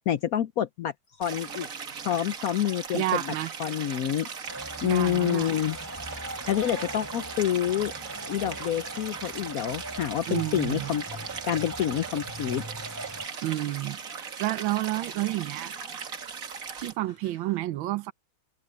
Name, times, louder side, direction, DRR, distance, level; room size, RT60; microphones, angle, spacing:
voice 1, 0.1-1.7 2.0-3.3 3.6-4.3 4.8-5.8 6.5-7.9 8.3-11.0 11.5-12.6, left 11 dB, 80° left, 0.8 m, -27 dB
sound 1, 1.2-17.6, left 2 dB, 45° left, 5.3 m, -56 dB
Stream, 1.2-16.9, right 6 dB, 45° right, 1.7 m, -39 dB
voice 2, 2.9-3.5 4.8-5.5 10.3-10.9 13.4-14.0 14.4-15.7 16.8-18.1, right 15 dB, 70° right, 1.5 m, -30 dB
sound 2, 4.5-13.3, right 1 dB, 10° right, 4.2 m, -41 dB
omnidirectional pair, 2.3 m